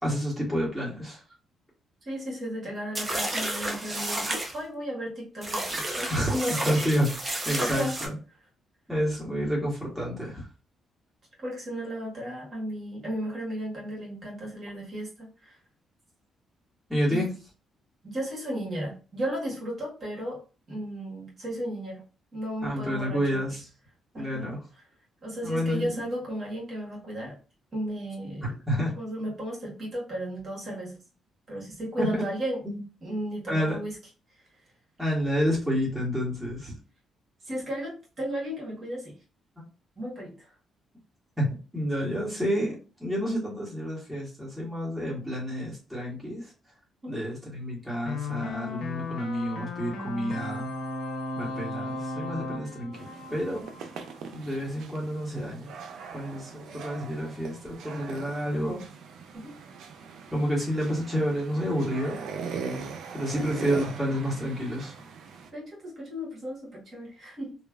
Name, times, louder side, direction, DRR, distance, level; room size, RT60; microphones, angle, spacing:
voice 1, 0.0-1.2 6.1-6.3 6.6-7.2 7.4-8.1 8.9-10.5 16.9-17.3 22.6-23.6 24.2-24.6 25.4-26.1 28.4-28.9 32.0-32.2 32.6-32.7 33.5-33.8 35.0-36.7 41.4-41.5 41.7-46.5 47.1-50.7 51.3-53.6 54.3-55.7 56.1-58.8 60.3-62.3 63.1-64.9, equal, 5° right, -5 dB, 1.4 m, -29 dB
voice 2, 2.0-6.9 7.3-7.9 11.4-15.6 17.1-17.2 18.0-20.4 20.7-22.0 22.3-23.4 24.1-24.5 25.2-27.4 27.7-28.6 29.0-31.0 31.5-32.6 33.0-34.0 37.4-39.1 40.0-40.5 47.0-47.2 63.3-63.6 65.5-67.6, equal, 45° right, -3 dB, 1.4 m, -34 dB
sound 1, 2.9-4.5 5.4-8.1, right 1 dB, 25° right, 0.7 m, -31 dB
sound 2, 48.1-54.2, left 2 dB, 75° left, 0.6 m, -35 dB
sound 3, 52.9-65.5, right 5 dB, 75° right, 0.4 m, -41 dB
3.0 x 2.3 x 2.3 m, 0.34 s
cardioid pair, 90°, 0 cm